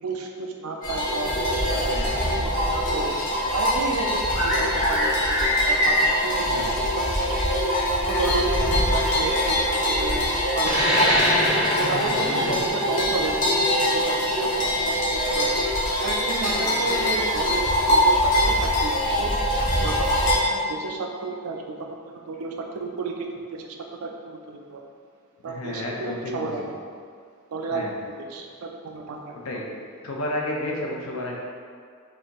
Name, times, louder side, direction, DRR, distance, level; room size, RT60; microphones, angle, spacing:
voice 1, 0.0-1.9 2.4-3.1 3.5-7.5 8.0-10.3 10.5-10.9 11.8-15.6 16.0-19.3 19.8-23.8 24.0-24.8 25.4-26.6 27.5-29.3, right 3 dB, 80° right, 2 dB, 0.4 m, -32 dB
sound 1, 0.8-20.4, equal, 35° left, 0.8 m, -23 dB
voice 2, 1.8-2.3 6.4-6.8 11.8-12.6 16.7-16.9 25.5-26.7 27.7-27.9 29.3-29.6 30.0-31.4, left 1 dB, 70° left, -2 dB, 0.6 m, -32 dB
sound 2, 10.6-15.7, equal, 5° right, 0.5 m, -26 dB
4.6 x 2.7 x 3.0 m, 2.1 s
head